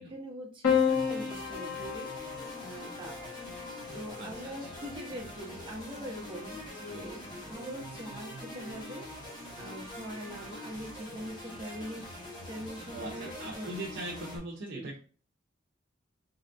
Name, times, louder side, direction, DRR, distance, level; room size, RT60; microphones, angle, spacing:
voice 1, 0.0-3.2 3.9-13.7 14.6-14.9, equal, 25° right, -1 dB, 1.1 m, -43 dB
Piano, 0.6-5.1 6.3-7.0, left 7 dB, 85° left, 1.4 m, -32 dB
sound 1, 0.7-14.4, equal, 25° left, 1.4 m, -44 dB
voice 2, 4.2-4.5 12.9-15.0, right 1 dB, 60° right, -2 dB, 0.8 m, -40 dB
4.3 x 3.9 x 2.6 m, 0.40 s
head